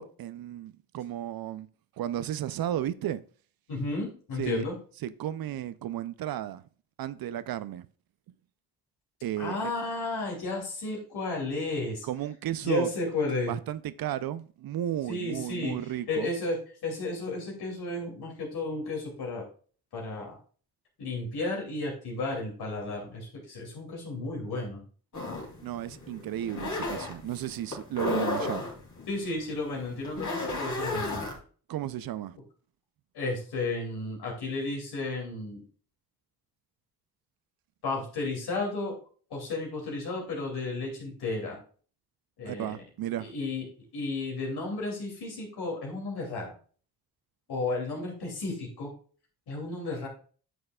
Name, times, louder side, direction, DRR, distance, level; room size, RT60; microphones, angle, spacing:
voice 1, 0.0-1.7 2.0-3.2 4.4-4.6 5.0-6.6 7.0-7.9 9.2-9.7 12.0-12.9 13.5-16.3 25.6-28.6 31.7-32.4 42.4-43.3, right 11 dB, 65° right, 0.5 m, -34 dB
voice 2, 3.7-4.8 9.4-12.0 12.6-13.5 15.1-15.7 16.1-16.6 16.8-19.4 19.9-20.4 21.0-24.8 29.1-31.3 33.1-35.6 37.8-38.9 39.3-41.6 42.4-42.8 43.2-43.6 43.9-46.5 47.5-48.9 49.5-50.1, left 2 dB, 75° left, 2.7 m, -33 dB
sound 1, 25.1-31.4, left 2 dB, 50° left, 2.7 m, -34 dB
9.1 x 6.4 x 2.3 m
supercardioid pair, 45°, 39 cm